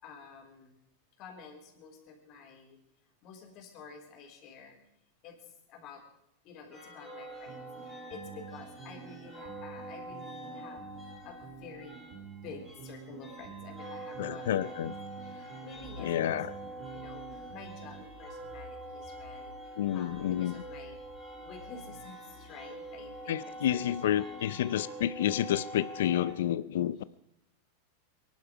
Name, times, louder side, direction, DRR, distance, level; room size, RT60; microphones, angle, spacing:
voice 1, 0.0-0.7 1.2-2.8 3.2-4.8 5.2-6.0 6.4-10.9 11.2-12.0 12.4-14.9 15.2-16.4 16.9-21.0 21.4-24.6 26.9-27.0, left 5 dB, 35° left, 3 dB, 3.5 m, -50 dB
sound 1, 6.7-26.3, right 1 dB, ahead, 4.8 m, -45 dB
sound 2, 7.5-18.1, right 6 dB, 35° right, 2.4 m, -48 dB
voice 2, 14.2-14.9 16.0-16.6 19.8-20.6 23.3-27.0, left 11 dB, 80° left, 17 dB, 0.5 m, -30 dB
23.5 x 11.5 x 5.0 m, 0.79 s
supercardioid pair, 160°, 0 cm